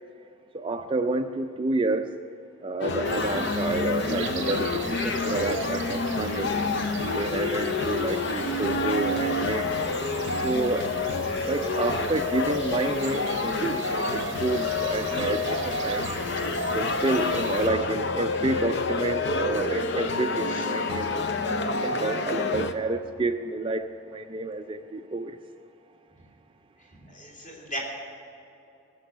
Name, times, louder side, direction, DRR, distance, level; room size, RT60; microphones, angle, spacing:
voice 1, 0.5-2.1 2.6-6.5 7.2-9.7 10.4-10.9 11.5-16.1 16.7-21.6 21.8-23.8 24.1-25.4, right 2 dB, 25° right, 6 dB, 0.3 m, -29 dB
sound 1, 2.8-22.7, left 3 dB, 55° left, 0.7 m, -28 dB
sound 2, 3.0-17.7, right 7 dB, 55° right, 0.6 m, -40 dB
voice 2, 26.8-27.8, equal, 35° left, -3 dB, 3.6 m, -39 dB
18.0 x 6.9 x 9.9 m, 2.8 s
head